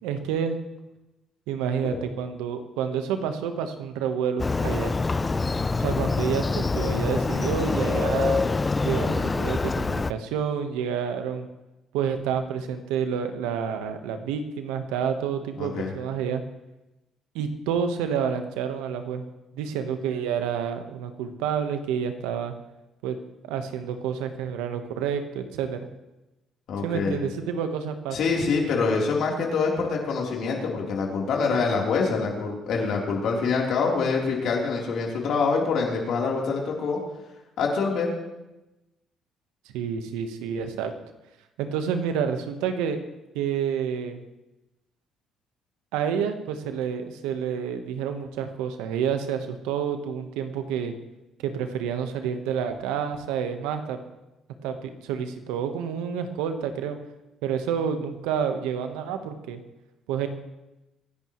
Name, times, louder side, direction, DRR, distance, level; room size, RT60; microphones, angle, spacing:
voice 1, 0.0-0.6 1.5-4.9 5.7-8.4 8.8-11.5 11.9-16.4 17.3-19.2 19.5-22.5 23.0-23.2 23.4-25.8 26.8-28.2 39.7-40.9 41.6-43.0 43.3-44.2 45.9-50.9 51.4-54.0 54.6-57.0 57.4-59.6 60.1-60.3, right 7 dB, 90° right, 7 dB, 1.2 m, -29 dB
Motorcycle, 4.4-10.1, left 3 dB, 25° left, 0.5 m, -25 dB
voice 2, 15.6-15.9 26.7-27.2 28.1-37.0 37.6-38.1, left 4 dB, 70° left, -1 dB, 3.7 m, -25 dB
25.0 x 10.5 x 3.2 m, 0.99 s
supercardioid pair, 70°, 0 cm